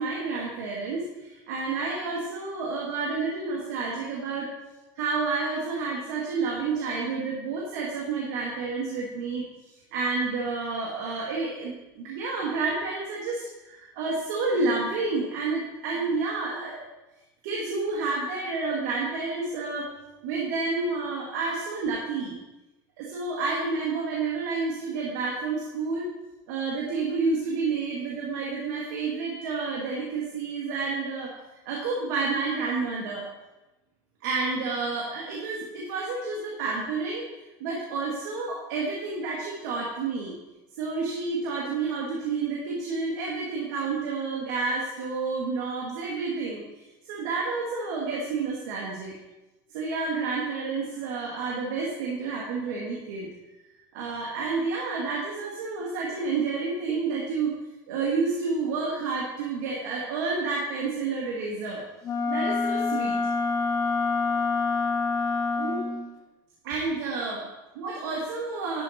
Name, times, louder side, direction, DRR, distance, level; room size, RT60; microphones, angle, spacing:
voice 1, 0.0-4.5 5.0-16.9 17.4-19.9 20.2-22.4 23.0-26.1 26.5-31.4 31.7-33.2 34.2-37.2 37.6-40.3 40.8-49.2 49.7-53.3 53.9-57.5 57.9-61.8 62.3-63.2 64.3-64.4 65.6-65.9 66.6-67.4 67.8-68.8, right 4 dB, 75° right, -2 dB, 1.8 m, -30 dB
Wind instrument woodwind instrument, 62.0-66.1, left 4 dB, 35° left, 1.4 m, -26 dB
11.5 x 4.7 x 4.2 m, 1.0 s
supercardioid pair, 115°, 10 cm